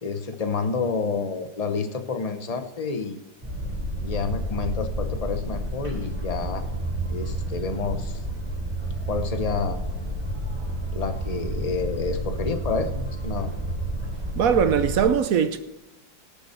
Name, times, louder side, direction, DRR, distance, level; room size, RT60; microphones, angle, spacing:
voice 1, 0.0-3.2 4.0-6.6 7.1-8.2 9.1-9.8 10.9-13.5, left 4 dB, 70° left, 0.3 m, -29 dB
Boat Water vehicle, 3.4-15.0, right 1 dB, 15° right, 3.8 m, -30 dB
voice 2, 14.4-15.6, right 7 dB, 60° right, 0.9 m, -20 dB
17.5 x 7.0 x 4.3 m
omnidirectional pair, 2.0 m